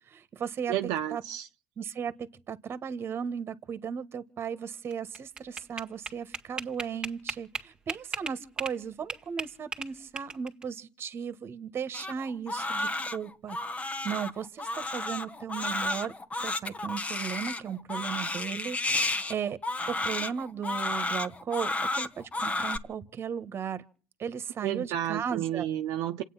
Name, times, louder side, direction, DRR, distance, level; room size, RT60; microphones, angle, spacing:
voice 1, 0.1-0.7 1.1-1.2 1.8-16.1 16.4-19.6 19.9-23.8 24.2-25.7, right 7 dB, 40° right, 1.5 m, -36 dB
voice 2, 0.7-1.5 24.6-26.2, right 12 dB, 75° right, 0.9 m, -31 dB
sound 1, 4.9-8.8 9.1-10.6, right 3 dB, 15° right, 1.9 m, -36 dB
Crying sobbing, 11.9-22.8, left 2 dB, 20° left, 1.4 m, -32 dB
27.5 x 9.1 x 5.8 m
supercardioid pair, 95°, 6 cm